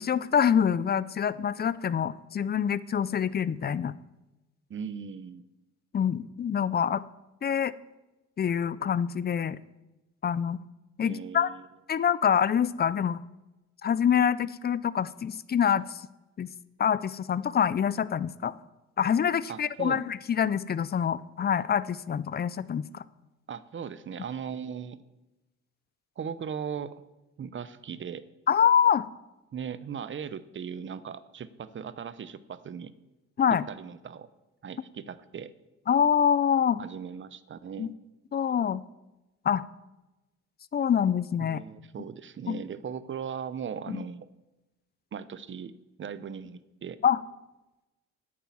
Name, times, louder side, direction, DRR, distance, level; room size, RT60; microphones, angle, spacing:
voice 1, 0.0-3.9 5.9-7.0 7.4-7.7 8.4-9.6 10.2-10.6 11.0-11.5 11.9-13.2 13.8-16.0 16.4-16.5 16.8-18.5 19.0-23.0 28.5-29.0 33.4-33.6 35.9-36.8 37.8-37.9 38.3-38.8 39.4-39.6 40.7-41.6 42.5-42.6 43.9-44.0 47.0-47.2, left 8 dB, 35° left, 17 dB, 0.5 m, -25 dB
voice 2, 4.7-5.5 11.0-11.7 19.5-20.1 23.5-25.0 26.2-27.0 27.4-28.3 29.5-32.9 33.5-34.3 34.6-35.5 36.8-37.9 41.4-44.3 45.1-47.0, right 7 dB, 40° right, 15 dB, 0.7 m, -38 dB
9.4 x 8.6 x 7.3 m, 1.0 s
cardioid pair, 90°, 30 cm